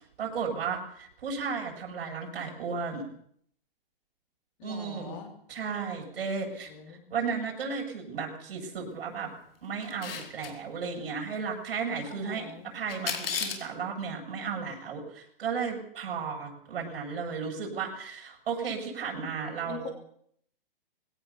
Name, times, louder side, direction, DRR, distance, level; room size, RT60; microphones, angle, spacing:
voice 1, 0.0-3.1 4.6-5.2 5.5-9.3 9.6-19.9, right 5 dB, 65° right, 0 dB, 7.7 m, -34 dB
voice 2, 4.6-5.3 6.4-7.1 12.1-12.7 19.7-19.9, left 7 dB, 30° left, 5 dB, 3.1 m, -44 dB
Camera, 9.8-10.5 12.9-13.7, left 6 dB, 70° left, 4.7 m, -33 dB
21.5 x 17.0 x 7.1 m, 0.65 s
hypercardioid pair, 170°, 30 cm